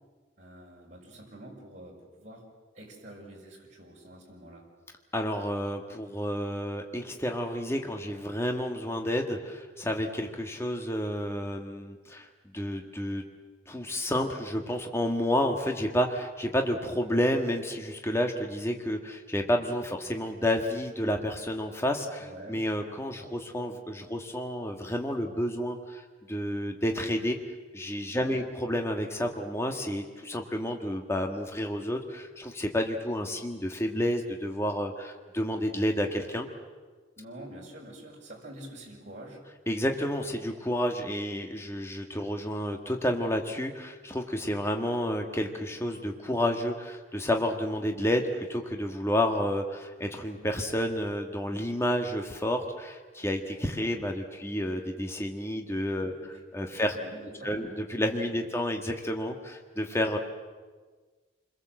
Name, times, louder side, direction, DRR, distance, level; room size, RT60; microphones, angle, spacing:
voice 1, 0.4-2.4 2.7-4.6 22.2-22.6 28.1-28.5 37.2-39.4 56.0-56.4 56.6-57.6 58.3-58.5, right 1 dB, 40° right, -3 dB, 6.4 m, -46 dB
voice 2, 5.1-12.3 12.5-13.2 13.7-27.4 27.7-36.5 39.7-48.2 48.5-56.1 56.5-56.9 57.4-60.2, equal, 15° left, 3 dB, 1.6 m, -30 dB
29.5 x 21.5 x 7.6 m, 1.4 s
head